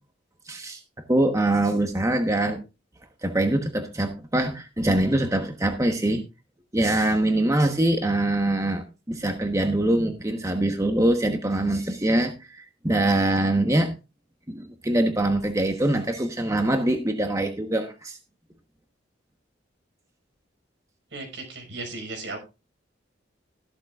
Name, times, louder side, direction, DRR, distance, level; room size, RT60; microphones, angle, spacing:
voice 1, 0.5-0.8 1.1-2.6 3.2-6.2 6.7-13.9 14.5-18.2, right 1 dB, 15° right, 5 dB, 1.1 m, -23 dB
voice 2, 21.1-22.4, right 3 dB, 70° right, 4 dB, 5.5 m, -36 dB
14.5 x 12.0 x 2.4 m, 0.28 s
head